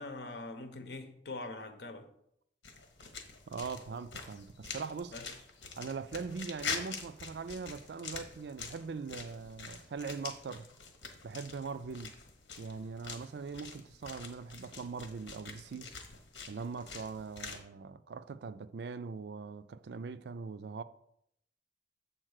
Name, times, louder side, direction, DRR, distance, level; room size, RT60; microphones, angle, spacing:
voice 1, 0.0-2.1 5.1-5.3, left 2 dB, 65° left, 0.9 m, -43 dB
sound 1, 2.6-17.6, left 5 dB, 85° left, 1.2 m, -45 dB
voice 2, 3.5-5.1 5.8-10.7 11.2-12.1 12.6-15.9 16.5-20.8, right 5 dB, 60° right, 0.4 m, -41 dB
7.7 x 4.0 x 6.4 m
head